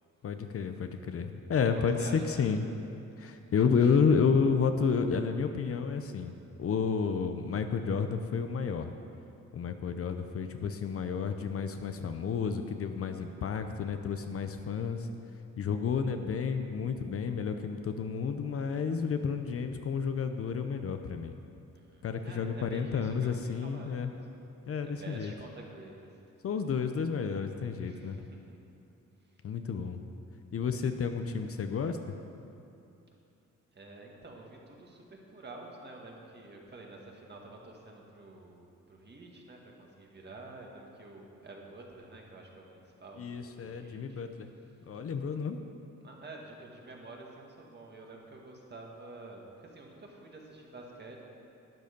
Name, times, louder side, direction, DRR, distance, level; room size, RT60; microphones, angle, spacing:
voice 1, 0.2-2.6 3.2-6.3 6.6-8.9 9.5-15.1 15.6-21.3 22.0-24.1 24.7-25.3 26.4-28.2 29.4-30.0 30.5-32.2 43.2-44.5 44.9-45.6, left 6 dB, 50° left, 7 dB, 0.6 m, -31 dB
voice 2, 1.7-2.6 21.7-24.3 24.8-26.2 27.8-28.6 29.2-29.3 33.7-44.2 46.0-51.2, right 2 dB, 35° right, 0 dB, 1.8 m, -49 dB
12.0 x 9.2 x 5.2 m, 2.8 s
cardioid pair, 120°, 30 cm